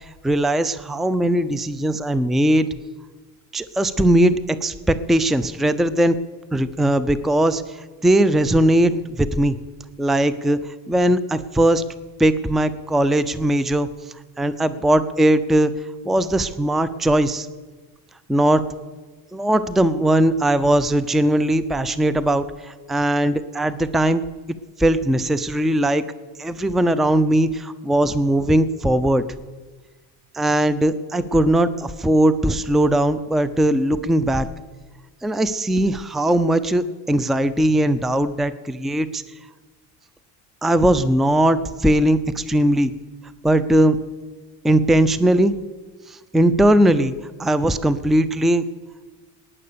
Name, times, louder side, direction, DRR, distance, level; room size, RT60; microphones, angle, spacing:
voice 1, 0.0-2.7 3.5-6.1 6.5-9.6 10.0-11.8 12.2-13.9 14.4-15.7 16.0-17.5 18.3-18.6 19.3-24.2 24.8-26.0 26.4-29.2 30.3-34.5 35.2-39.2 40.6-42.9 43.4-44.0 44.6-45.5 46.1-47.1 47.4-48.6, right 1 dB, ahead, 14 dB, 0.6 m, -19 dB
18.5 x 10.0 x 6.9 m, 1.3 s
supercardioid pair, 90°, 44 cm